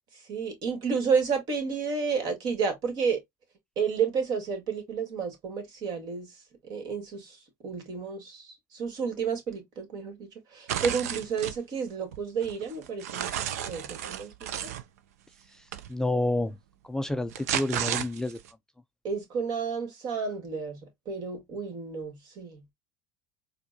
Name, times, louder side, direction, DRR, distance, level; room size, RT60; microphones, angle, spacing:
voice 1, 0.3-3.2 3.7-6.3 6.6-14.5 19.0-22.7, right 5 dB, 55° right, 1.7 m, -31 dB
sound 1, 10.7-11.6 12.1-14.8 15.7-15.9 17.1-18.5, right 10 dB, 80° right, 0.5 m, -33 dB
voice 2, 15.9-16.6 16.8-18.4, left 1 dB, 5° left, 0.3 m, -29 dB
4.4 x 2.3 x 2.7 m
hypercardioid pair, 80°, 8 cm